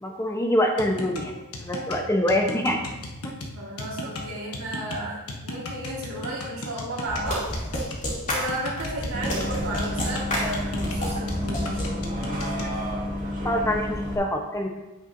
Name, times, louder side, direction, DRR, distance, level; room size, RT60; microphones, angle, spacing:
voice 1, 0.0-1.3 1.6-2.9 3.2-3.3 13.4-14.7, left 1 dB, 15° left, 2 dB, 1.0 m, -25 dB
sound 1, 0.8-12.8, left 2 dB, 80° left, 1.2 m, -36 dB
voice 2, 3.5-7.5 8.3-12.2, right 1 dB, 80° right, -8 dB, 2.0 m, -34 dB
sound 2, 7.1-11.9, equal, 35° left, 2.7 m, -29 dB
Bus, 9.1-14.2, equal, 35° right, 1.9 m, -30 dB
9.5 x 8.2 x 2.8 m, 1.1 s
head